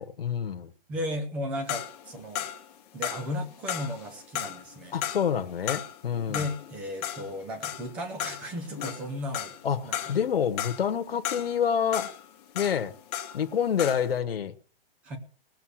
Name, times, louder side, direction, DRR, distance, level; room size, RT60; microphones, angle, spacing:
voice 1, 0.0-0.7 4.9-6.4 9.6-12.1 12.5-12.9 13.3-14.5, left 8 dB, 80° left, 1.3 m, -27 dB
voice 2, 0.9-2.5 2.9-5.0 6.3-9.5 9.8-10.1 15.0-15.2, left 1 dB, 5° right, 0.6 m, -35 dB
sound 1, 1.7-13.5 13.8-14.1, left 11 dB, 15° left, 1.1 m, -36 dB
18.5 x 6.9 x 6.3 m
hypercardioid pair, 175°, 29 cm